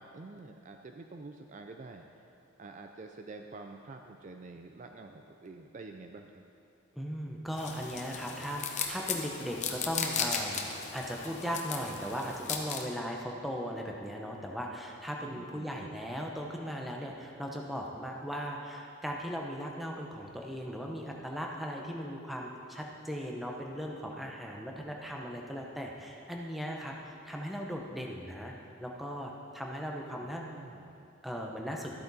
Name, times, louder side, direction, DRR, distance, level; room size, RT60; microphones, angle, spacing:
voice 1, 0.0-6.4 15.2-16.0 30.2-31.1, right 3 dB, 35° right, 5 dB, 0.4 m, -48 dB
voice 2, 6.9-28.5 28.8-30.4 31.2-31.9, equal, ahead, -1 dB, 0.8 m, -38 dB
sound 1, 7.6-12.8, left 6 dB, 35° left, 0.8 m, -36 dB
13.0 x 8.8 x 4.1 m, 2.6 s
head